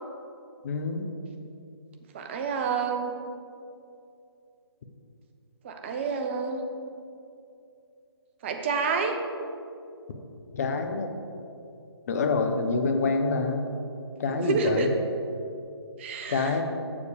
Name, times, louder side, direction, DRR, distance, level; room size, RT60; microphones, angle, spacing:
voice 1, 0.6-1.1 10.5-11.1 12.1-13.7 14.2-14.9 16.3-16.6, left 4 dB, 35° left, 6 dB, 0.7 m, -26 dB
voice 2, 2.1-3.2 5.6-6.6 8.4-9.2 14.3-14.9 16.0-16.6, right 5 dB, 25° right, 4 dB, 0.7 m, -28 dB
7.0 x 6.6 x 5.0 m, 2.6 s
figure-of-eight pair, 140°, 14 cm